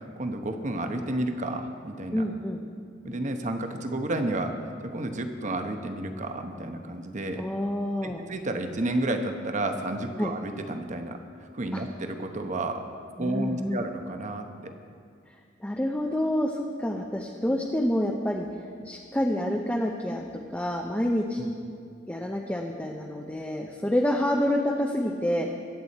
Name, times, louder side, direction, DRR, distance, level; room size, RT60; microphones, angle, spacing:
voice 1, 0.2-2.2 3.0-4.5 4.9-7.5 8.0-11.2 11.5-12.9 13.2-14.5 21.4-21.5, right 1 dB, 40° right, 6 dB, 1.0 m, -31 dB
voice 2, 2.1-2.6 7.4-8.3 10.2-10.3 11.7-11.8 13.2-13.8 15.6-18.5 18.8-21.4 22.1-25.5, left 1 dB, 10° left, 0 dB, 0.7 m, -28 dB
22.5 x 8.4 x 4.2 m, 2.3 s
head